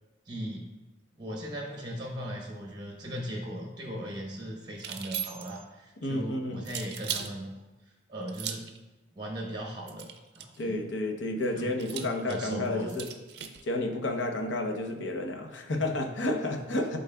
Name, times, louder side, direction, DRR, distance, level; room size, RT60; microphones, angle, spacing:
voice 1, 0.3-0.7 1.2-7.5 8.1-8.6 9.1-10.1 10.3-10.8 11.5-13.0, equal, 20° right, -1 dB, 0.8 m, -38 dB
sound 1, 4.7-5.6 6.6-7.3 8.3-8.8 9.9-10.6 11.8-13.6, right 9 dB, 55° right, 0.5 m, -38 dB
voice 2, 6.0-6.6 10.6-13.1 13.6-17.0, left 1 dB, 75° left, 4 dB, 0.8 m, -31 dB
11.0 x 4.0 x 2.2 m, 1.1 s
head